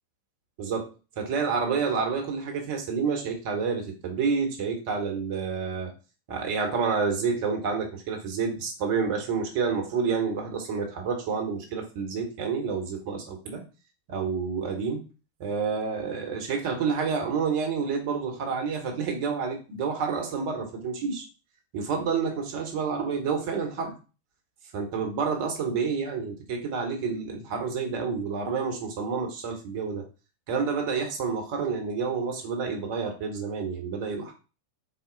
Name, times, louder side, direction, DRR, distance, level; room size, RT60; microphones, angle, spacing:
voice 1, 0.6-5.9 6.3-13.6 14.1-15.0 15.4-21.2 21.7-23.9 24.7-30.0 30.5-34.3, right 5 dB, 45° right, 2 dB, 1.3 m, -29 dB
4.2 x 2.3 x 4.0 m, 0.33 s
figure-of-eight pair, 90°, 0 cm